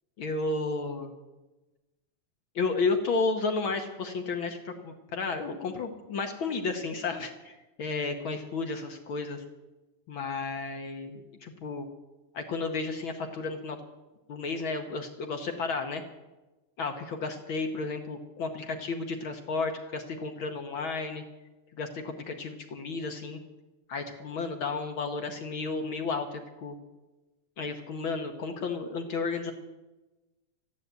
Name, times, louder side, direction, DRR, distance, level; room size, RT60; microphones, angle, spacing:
voice 1, 0.2-1.1 2.5-9.4 10.1-11.9 12.3-13.8 14.3-16.0 16.8-21.2 21.8-23.4 23.9-26.8 27.6-29.5, left 4 dB, 60° left, 6 dB, 1.3 m, -32 dB
13.5 x 11.0 x 8.0 m, 1.1 s
omnidirectional pair, 3.5 m